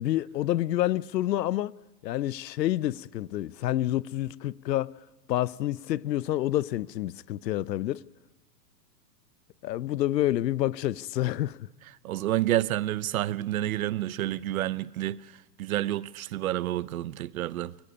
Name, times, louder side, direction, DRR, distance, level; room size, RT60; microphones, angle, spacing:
voice 1, 0.0-1.7 2.0-5.0 5.3-8.0 9.6-11.7, left 14 dB, 75° left, 0.8 m, -28 dB
voice 2, 12.0-15.2 15.6-17.7, right 14 dB, 55° right, 0.8 m, -29 dB
22.5 x 18.0 x 9.9 m
hypercardioid pair, 160°, 50 cm